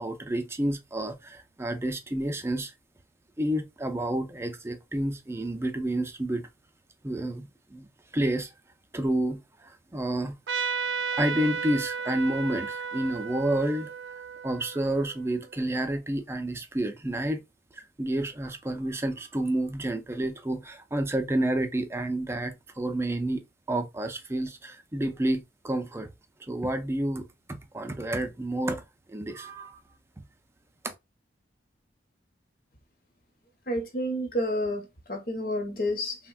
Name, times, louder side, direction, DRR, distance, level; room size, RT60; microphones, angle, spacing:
voice 1, 0.0-2.7 3.4-6.5 7.0-7.9 8.1-8.5 8.9-10.3 11.2-13.9 14.4-17.4 17.7-23.4 23.7-26.1 26.5-29.8 30.8-30.9, right 1 dB, 15° right, 0.4 m, -30 dB
Trumpet, 10.5-15.6, right 5 dB, 80° right, 0.4 m, -33 dB
voice 2, 33.7-36.2, equal, 50° left, 0.8 m, -30 dB
3.3 x 2.1 x 2.3 m
head